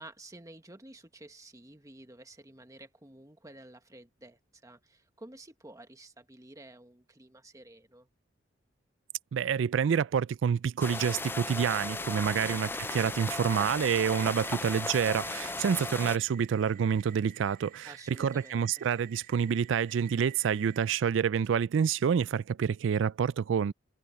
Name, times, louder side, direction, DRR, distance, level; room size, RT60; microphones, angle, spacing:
voice 1, 0.0-8.1 17.8-18.7, right 1 dB, 15° right, 1.5 m, -51 dB
voice 2, 9.3-23.7, right 7 dB, 70° right, 0.3 m, -28 dB
sound 1, 10.8-16.2, left 3 dB, 10° left, 0.3 m, -36 dB
sound 2, 11.0-20.9, right 13 dB, 45° right, 0.7 m, -52 dB
head